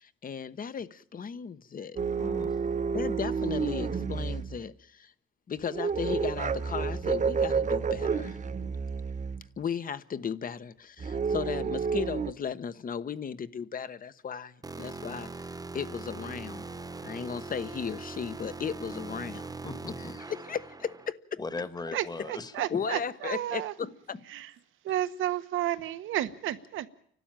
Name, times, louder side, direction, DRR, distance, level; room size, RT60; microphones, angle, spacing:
voice 1, 0.0-2.0 2.9-5.1 5.5-8.4 9.6-16.7 17.0-19.5 20.5-21.4 22.7-23.9, left 7 dB, 45° left, 1.2 m, -36 dB
sound 1, 2.0-4.6 5.7-9.5 11.0-12.3, right 5 dB, 40° right, 1.2 m, -30 dB
voice 2, 2.2-2.6 19.6-20.1 21.4-22.8 23.8-23.9 24.9-25.0, left 3 dB, 20° left, 1.5 m, -39 dB
sound 2, 14.6-21.1, right 3 dB, 20° right, 1.2 m, -41 dB
voice 3, 21.9-23.7 24.3-24.5 24.8-26.9, right 13 dB, 85° right, 1.4 m, -32 dB
29.5 x 12.5 x 9.0 m
cardioid pair, 90°, 20 cm